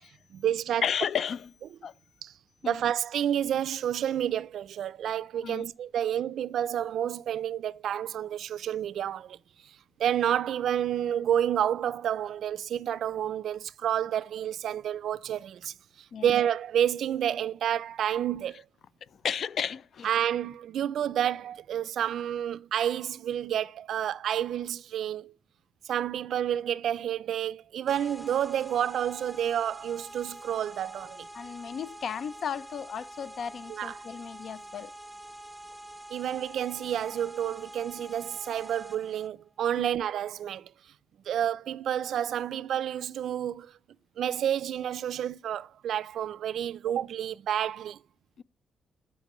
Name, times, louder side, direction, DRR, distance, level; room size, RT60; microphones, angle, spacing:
voice 1, 0.3-0.8 2.2-2.3 2.6-9.4 9.6-15.7 16.2-18.7 20.0-25.3 25.8-31.3 33.7-34.0 36.1-40.7 41.3-43.8 44.2-48.0, right 10 dB, 70° right, 0.4 m, -29 dB
voice 2, 0.8-1.5 1.8-1.9 2.6-2.8 5.4-5.7 16.1-16.3 19.2-20.1 31.3-34.9 39.8-39.9 48.4-48.5, left 8 dB, 55° left, 0.4 m, -33 dB
sound 1, 27.9-39.3, right 1 dB, 5° right, 0.5 m, -46 dB
11.5 x 5.8 x 3.0 m
cardioid pair, 140°, 0 cm